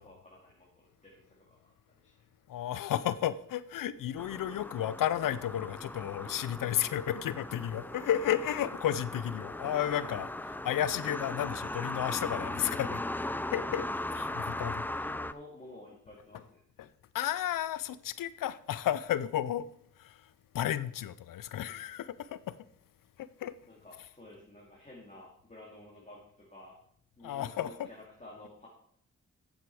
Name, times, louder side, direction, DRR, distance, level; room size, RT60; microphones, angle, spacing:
voice 1, 0.0-1.7 2.0-2.2 14.1-16.6 23.7-26.8 27.2-28.7, left 1 dB, 20° left, 2.8 m, -52 dB
voice 2, 2.5-13.0 13.5-14.8 16.8-19.7 20.0-22.6 23.2-23.5 27.2-27.9, left 11 dB, 85° left, 0.6 m, -33 dB
sound 1, 4.2-15.3, left 1 dB, 5° left, 0.5 m, -38 dB
8.5 x 8.0 x 4.9 m
cardioid pair, 50°, 32 cm